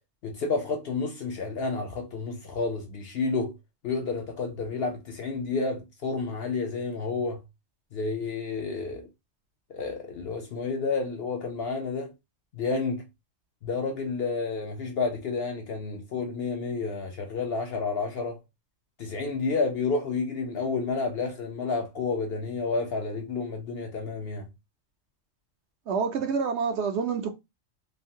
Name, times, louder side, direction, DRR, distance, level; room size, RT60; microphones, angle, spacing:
voice 1, 0.2-3.5 3.8-7.4 7.9-9.1 9.7-12.1 12.5-13.0 13.6-18.4 19.0-24.5, left 4 dB, 60° left, 0.7 m, -30 dB
voice 2, 25.9-27.3, right 5 dB, 65° right, 0.8 m, -27 dB
3.1 x 2.1 x 2.6 m
omnidirectional pair, 1.3 m